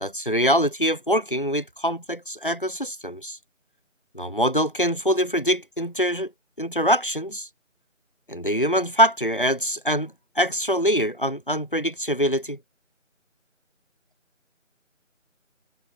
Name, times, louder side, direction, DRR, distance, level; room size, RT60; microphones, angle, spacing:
voice 1, 0.0-3.4 4.1-6.3 6.6-7.5 8.3-12.6, equal, 45° left, 0.5 m, -24 dB
figure-of-eight pair, 180°, 39 cm